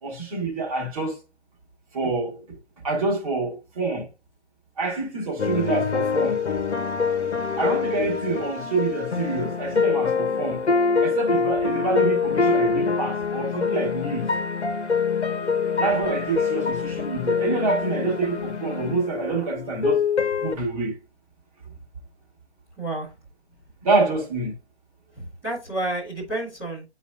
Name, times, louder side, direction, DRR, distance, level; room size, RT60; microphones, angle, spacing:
voice 1, 0.0-1.1 1.9-2.4 2.8-4.0 4.8-6.4 7.6-10.6 11.0-14.3 15.8-20.0 20.4-20.9 23.8-24.5, right 3 dB, 30° right, 2.4 m, -26 dB
sound 1, 5.4-20.5, left 5 dB, 75° left, 1.1 m, -25 dB
voice 2, 22.8-23.1 25.2-26.8, right 1 dB, 10° right, 1.5 m, -30 dB
10.5 x 4.1 x 2.5 m
figure-of-eight pair, 155°, 34 cm